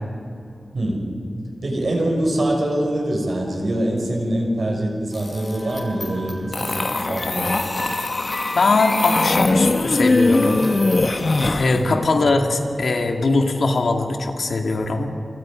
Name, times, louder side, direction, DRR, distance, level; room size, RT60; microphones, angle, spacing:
voice 1, 0.7-1.1 1.6-7.5 11.7-12.0, right 1 dB, 55° right, 0 dB, 6.0 m, -24 dB
sound 1, 5.1-11.0, left 1 dB, 25° left, 7.9 m, -36 dB
sound 2, 6.5-11.8, left 2 dB, 40° left, 1.3 m, -21 dB
voice 2, 8.5-10.7 11.6-15.1, left 3 dB, 70° left, 3 dB, 2.3 m, -21 dB
29.0 x 25.5 x 5.2 m, 2.6 s
wide cardioid pair, 130°, 0 cm